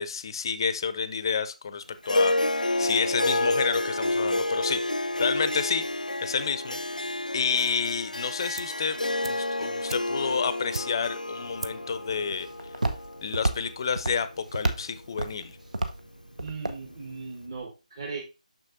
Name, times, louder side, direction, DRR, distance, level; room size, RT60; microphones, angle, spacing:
voice 1, 0.0-5.9 6.2-6.8 7.3-9.0 9.2-12.5 13.2-15.5, left 6 dB, 35° left, 13 dB, 0.5 m, -30 dB
Harp, 2.0-14.6, left 2 dB, 90° left, 0.5 m, -29 dB
sound 1, 8.5-8.9 9.2-11.2 11.6-12.0 12.2-12.3, right 4 dB, 50° right, 0.4 m, -40 dB
Walk footsteps, 11.4-17.6, right 2 dB, 70° right, 1.0 m, -33 dB
voice 2, 16.4-18.2, right 4 dB, 35° right, -2 dB, 1.5 m, -38 dB
6.4 x 6.3 x 2.6 m, 0.27 s
figure-of-eight pair, 155°, 4 cm